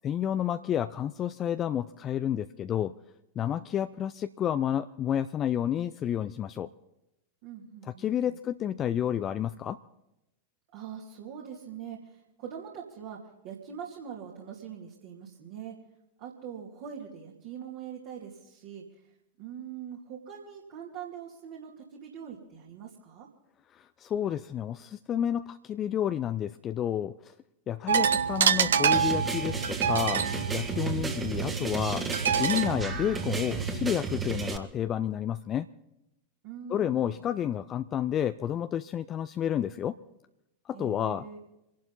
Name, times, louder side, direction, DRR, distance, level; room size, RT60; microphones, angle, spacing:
voice 1, 0.0-2.9 3.4-6.7 8.0-9.8 23.7-27.3 27.7-32.1 32.4-35.7 36.7-40.0 40.7-41.4, left 10 dB, 30° left, 11 dB, 0.5 m, -30 dB
voice 2, 7.4-8.4 10.7-13.2 13.4-15.8 16.2-19.0 19.4-23.3 36.4-37.3 40.7-41.4, right 8 dB, 45° right, -2 dB, 2.6 m, -43 dB
sound 1, 27.9-33.9, right 7 dB, 65° right, 1.0 m, -28 dB
sound 2, 28.9-34.6, right 4 dB, 15° right, 1.8 m, -33 dB
27.5 x 11.5 x 4.1 m, 0.89 s
figure-of-eight pair, 90°, 0 cm